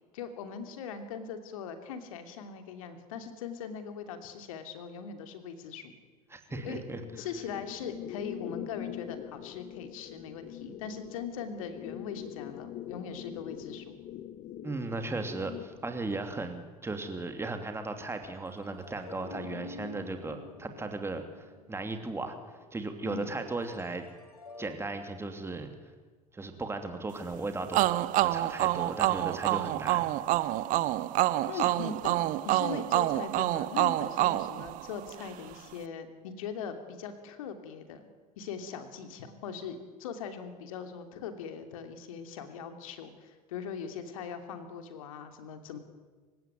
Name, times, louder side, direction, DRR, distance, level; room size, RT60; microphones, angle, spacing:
voice 1, 0.1-5.9 6.6-6.8 7.2-13.9 23.0-23.3 31.5-32.2 32.4-38.1 38.4-45.8, left 6 dB, 65° left, 8 dB, 2.9 m, -40 dB
voice 2, 6.3-7.0 14.6-24.1 24.6-25.7 26.3-27.9 28.2-30.1 31.5-31.7, right 3 dB, 15° right, 7 dB, 2.9 m, -36 dB
sound 1, 6.5-16.4, left 11 dB, 40° left, 1.2 m, -43 dB
sound 2, 18.4-22.6 23.6-24.8, left 3 dB, 80° left, 2.2 m, -48 dB
sound 3, 27.7-35.3, right 16 dB, 45° right, 0.9 m, -27 dB
27.5 x 17.0 x 9.3 m, 1.4 s
figure-of-eight pair, 70°, 19 cm